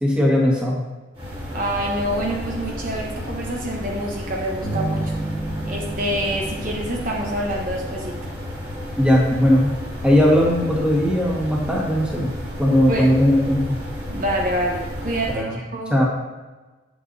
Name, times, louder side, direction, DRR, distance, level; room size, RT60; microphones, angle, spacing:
voice 1, 0.0-0.8 9.0-9.7 10.0-12.3 12.6-13.6 15.3-15.6 15.9-16.1, equal, 5° right, -4 dB, 1.6 m, -18 dB
sound 1, 1.1-15.4, left 1 dB, 30° right, 2.0 m, -32 dB
voice 2, 1.5-5.1 5.6-8.1 12.9-13.1 14.1-16.0, right 1 dB, 45° right, -1 dB, 1.0 m, -26 dB
sound 2, 4.6-8.0, right 2 dB, 50° left, 2.3 m, -31 dB
8.4 x 8.3 x 2.7 m, 1.2 s
head